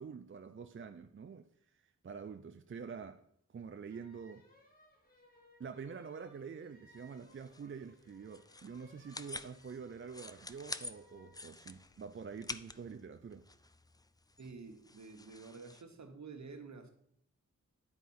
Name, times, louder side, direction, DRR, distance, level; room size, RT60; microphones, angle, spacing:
voice 1, 0.0-1.5 1.7-3.2 3.5-4.4 5.6-13.5, right 6 dB, 40° right, 0.5 m, -47 dB
sound 1, 3.9-11.4, left 1 dB, 30° left, 2.0 m, -65 dB
sound 2, 6.9-15.8, left 2 dB, 15° left, 0.4 m, -49 dB
voice 2, 14.4-16.9, right 4 dB, 65° right, 1.1 m, -50 dB
9.6 x 4.7 x 4.2 m
wide cardioid pair, 65°, 30 cm